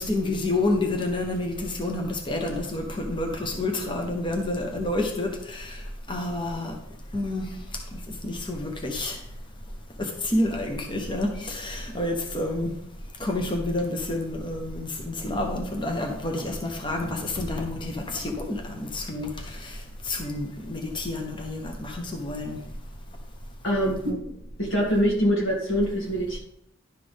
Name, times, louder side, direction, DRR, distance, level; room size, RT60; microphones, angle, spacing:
voice 1, 0.0-5.8 6.1-6.8 7.1-7.4 8.2-9.2 10.0-12.7 13.2-19.8 20.0-22.6, left 2 dB, 25° left, 3 dB, 0.9 m, -29 dB
voice 2, 23.6-26.4, equal, 90° left, -2 dB, 2.5 m, -25 dB
11.0 x 6.0 x 3.4 m, 0.78 s
head